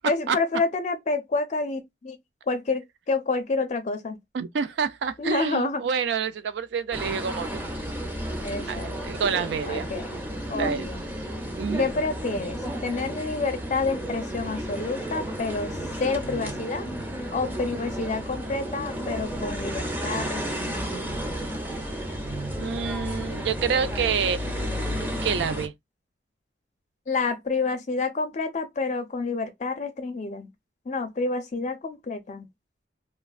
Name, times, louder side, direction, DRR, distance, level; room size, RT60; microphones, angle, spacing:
voice 1, 0.1-2.2 2.5-4.2 5.2-5.8 8.4-8.9 9.7-10.2 10.5-11.0 11.8-15.7 16.0-16.9 17.3-21.1 27.1-30.5 30.9-32.5, left 3 dB, 40° left, 0.4 m, -28 dB
voice 2, 4.3-7.6 8.7-9.9 10.5-10.9 11.5-11.9 22.6-24.4 25.2-25.7, right 6 dB, 70° right, 0.4 m, -27 dB
sound 1, 6.9-25.7, equal, 10° right, 0.6 m, -32 dB
3.1 x 2.2 x 2.3 m
head